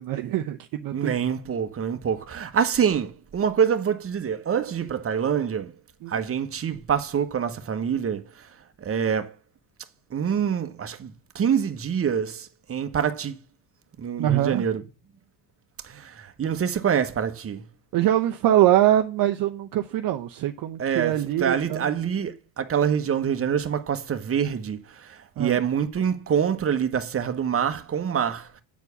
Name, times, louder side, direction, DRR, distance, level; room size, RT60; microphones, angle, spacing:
voice 1, 0.0-1.1 6.0-6.1 14.2-14.6 17.9-21.9 25.4-25.6, right 12 dB, 50° right, 0.8 m, -23 dB
voice 2, 0.9-5.7 6.1-8.5 8.8-9.3 10.1-13.4 14.0-14.9 15.8-17.6 20.8-28.5, right 8 dB, 30° right, 1.2 m, -26 dB
8.3 x 4.5 x 7.0 m
supercardioid pair, 85°, 45 cm